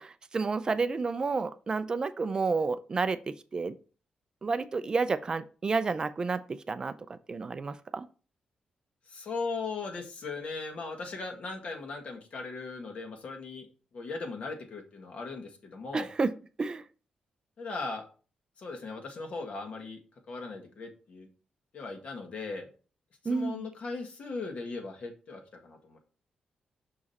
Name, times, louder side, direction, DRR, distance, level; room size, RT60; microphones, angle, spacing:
voice 1, 0.0-3.7 4.4-8.1 15.9-16.3 16.6-16.8 23.3-23.7, right 4 dB, 30° right, 12 dB, 0.4 m, -30 dB
voice 2, 9.1-13.7 13.9-16.1 17.6-18.0 18.6-20.0 20.3-21.3 21.7-22.7 23.2-26.0, left 3 dB, 55° left, 3 dB, 1.6 m, -38 dB
6.1 x 4.9 x 4.1 m, 0.37 s
wide cardioid pair, 130°, 3 cm